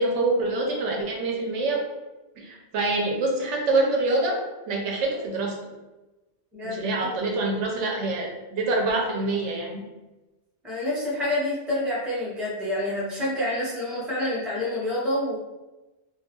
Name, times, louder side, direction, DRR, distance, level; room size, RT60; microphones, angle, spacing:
voice 1, 0.0-1.8 2.4-4.4 4.7-5.6 6.6-9.8, right 2 dB, 85° right, 0 dB, 0.9 m, -25 dB
voice 2, 6.5-7.2 10.6-15.4, left 1 dB, ahead, -6 dB, 0.5 m, -28 dB
2.3 x 2.3 x 2.8 m, 1.1 s
omnidirectional pair, 1.2 m